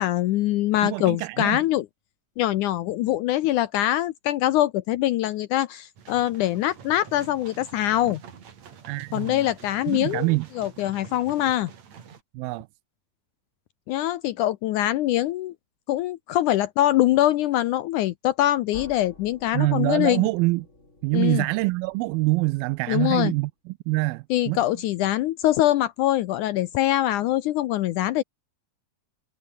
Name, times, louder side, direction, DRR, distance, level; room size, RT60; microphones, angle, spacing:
voice 1, 0.0-1.9 2.4-8.2 9.1-11.7 13.9-15.5 15.9-20.3 21.1-21.5 22.9-23.3 24.3-28.2, left 14 dB, 75° left, 1.9 m, -23 dB
voice 2, 0.8-1.6 8.9-9.5 9.9-10.5 12.3-12.7 19.5-20.7 21.0-24.6, right 22 dB, 85° right, 2.4 m, -25 dB
sound 1, 6.0-12.2, right 7 dB, 50° right, 3.6 m, -46 dB
sound 2, 18.7-23.5, left 2 dB, 20° left, 4.9 m, -50 dB
omnidirectional pair, 4.2 m